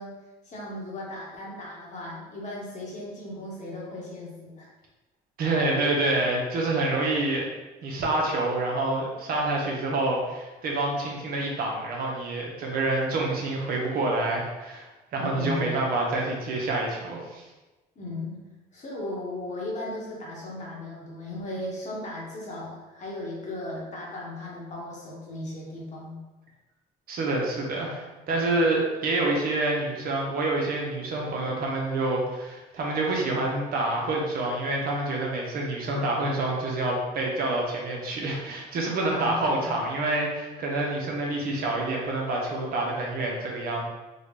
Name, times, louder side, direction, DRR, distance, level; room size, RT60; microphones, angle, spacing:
voice 1, 0.0-4.7 15.1-15.9 17.9-18.5 18.7-26.2 39.0-39.7, left 1 dB, 45° left, -4 dB, 1.3 m, -36 dB
voice 2, 5.4-7.5 7.8-14.9 15.1-17.4 27.1-43.9, right 2 dB, 60° right, -1 dB, 1.0 m, -27 dB
3.9 x 2.4 x 3.3 m, 1.1 s
cardioid pair, 110°, 17 cm